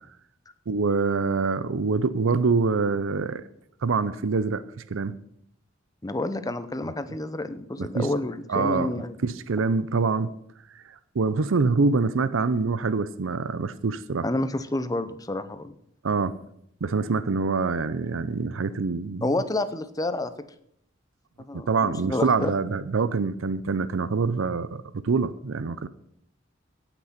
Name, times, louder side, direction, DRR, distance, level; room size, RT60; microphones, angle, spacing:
voice 1, 0.7-3.4 3.8-4.6 4.9-5.1 7.8-8.1 8.5-8.9 9.2-10.4 11.1-14.3 16.0-16.4 16.8-19.3 21.5-25.9, right 4 dB, 80° right, 14 dB, 0.6 m, -25 dB
voice 2, 6.0-9.2 14.2-15.7 19.2-20.3 21.5-22.5, left 2 dB, 20° left, 11 dB, 0.7 m, -29 dB
16.5 x 6.1 x 5.8 m, 0.72 s
head